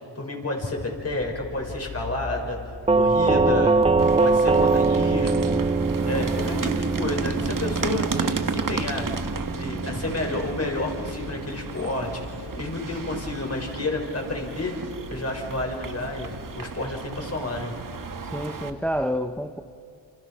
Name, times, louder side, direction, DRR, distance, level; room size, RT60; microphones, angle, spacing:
voice 1, 0.1-2.6 2.9-3.8 4.2-5.6 6.1-9.1 9.5-14.7 15.1-17.7, left 2 dB, 30° left, 6.4 m, -30 dB
sound 1, 0.9-19.1, left 3 dB, 85° left, 7.8 m, -43 dB
Doorbell, 2.9-11.7, right 3 dB, 15° right, 0.5 m, -23 dB
sound 2, 4.0-18.7, right 6 dB, 45° right, 1.6 m, -34 dB
voice 2, 18.2-19.6, equal, 5° left, 0.9 m, -28 dB
29.0 x 27.0 x 5.9 m
cardioid pair, 65°, 47 cm